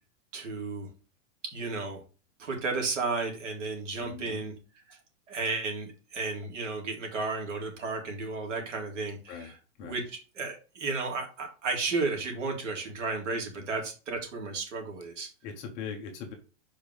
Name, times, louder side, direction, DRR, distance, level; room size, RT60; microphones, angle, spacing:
voice 1, 0.3-0.9 1.5-2.0 2.4-4.5 4.9-5.0 5.3-9.5 9.8-15.3, right 3 dB, 70° right, 1 dB, 3.8 m, -33 dB
voice 2, 3.9-4.4 9.3-9.5 9.8-10.0 13.5-13.6 15.4-16.3, left 6 dB, 20° left, 3 dB, 1.0 m, -40 dB
5.4 x 5.2 x 6.6 m, 0.35 s
supercardioid pair, 175°, 38 cm